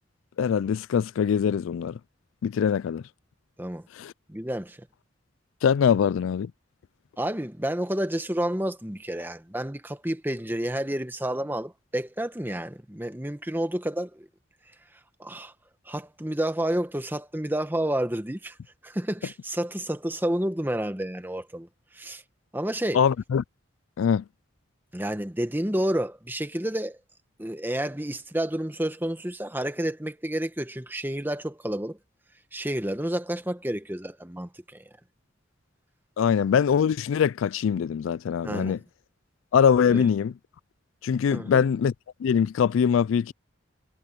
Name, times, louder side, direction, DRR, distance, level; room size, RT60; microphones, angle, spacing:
voice 1, 0.4-2.0 2.4-3.0 4.0-4.1 5.6-6.5 22.9-23.4 24.0-24.2 36.2-38.8 39.5-40.3 41.0-41.9 42.2-43.3, left 7 dB, 80° left, 0.3 m, -23 dB
voice 2, 4.3-4.9 7.2-14.3 15.2-15.5 15.9-18.6 18.8-21.7 21.9-22.2 22.5-23.0 24.9-27.0 27.4-32.0 32.5-34.8 38.4-38.8 39.8-40.1 41.3-41.6, right 1 dB, 10° right, 1.1 m, -30 dB
head